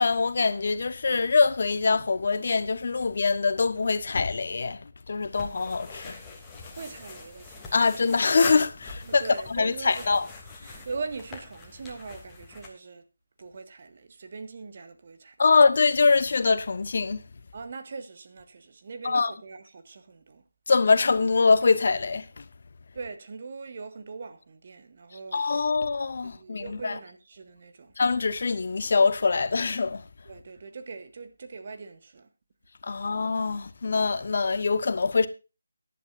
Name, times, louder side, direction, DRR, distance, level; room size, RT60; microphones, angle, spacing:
voice 1, 0.0-4.8 5.1-6.2 7.7-9.2 9.5-10.3 15.4-17.2 19.0-19.3 20.7-22.4 25.3-27.0 28.0-30.0 32.8-35.3, left 4 dB, 50° left, 1.2 m, -23 dB
sound 1, 5.3-12.7, left 3 dB, 10° left, 2.7 m, -43 dB
voice 2, 6.7-7.7 9.0-10.1 10.6-13.0 13.4-15.6 17.5-20.4 22.9-25.6 26.2-27.9 30.3-32.3, right 4 dB, 45° right, 1.8 m, -41 dB
17.0 x 11.0 x 2.6 m
figure-of-eight pair, 160°, 0 cm